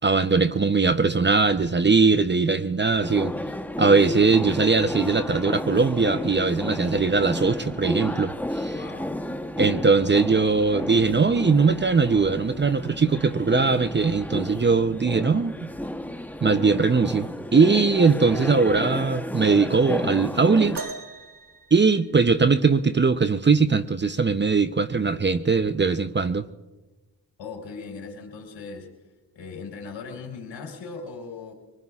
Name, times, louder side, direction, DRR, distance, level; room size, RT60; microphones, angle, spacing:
voice 1, 0.0-3.3 3.8-8.7 9.6-15.7 16.4-20.8 21.7-26.5, right 4 dB, 25° right, 0.7 m, -20 dB
sound 1, 3.0-20.8, left 1 dB, 5° left, 1.0 m, -32 dB
voice 2, 8.7-9.2 27.4-28.9 29.3-31.5, left 4 dB, 75° left, 3.9 m, -38 dB
sound 2, 20.7-22.6 24.3-24.4 25.2-25.4 26.3-26.4, right 3 dB, 50° right, 1.9 m, -39 dB
25.0 x 20.5 x 2.4 m
supercardioid pair, 55°, 44 cm